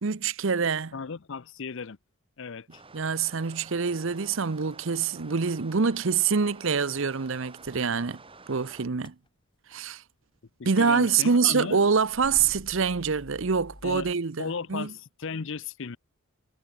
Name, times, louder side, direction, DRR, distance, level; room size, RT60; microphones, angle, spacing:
voice 1, 0.0-0.9 2.9-8.2 8.5-9.1 9.7-10.0 10.6-14.9, right 5 dB, 60° right, 0.7 m, -25 dB
voice 2, 0.9-2.0 2.4-2.8 10.8-11.8 13.8-14.1 14.4-16.0, left 5 dB, 60° left, 0.6 m, -35 dB
sound 1, 2.7-8.9, right 3 dB, 25° right, 7.3 m, -50 dB
sound 2, 7.4-8.0 8.3-8.8 9.0-9.3 9.5-9.7 11.6-11.7 12.0-14.1, left 1 dB, 25° left, 1.2 m, -48 dB
head